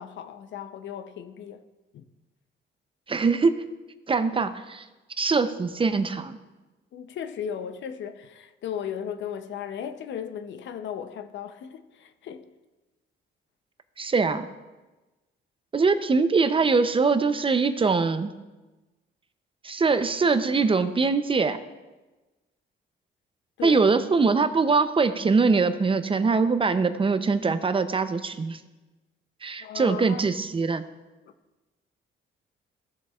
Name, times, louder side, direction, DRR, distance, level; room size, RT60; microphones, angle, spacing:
voice 1, 0.0-1.6 1.9-2.0 6.9-12.5 23.6-23.9 29.6-30.2, left 8 dB, 70° left, 0.7 m, -36 dB
voice 2, 3.1-3.6 4.1-4.8 5.2-6.4 14.0-14.5 15.7-18.3 19.6-21.6 23.6-28.6 29.4-30.8, right 4 dB, 25° right, 0.6 m, -23 dB
16.0 x 7.3 x 2.4 m
cardioid pair, 90°, 20 cm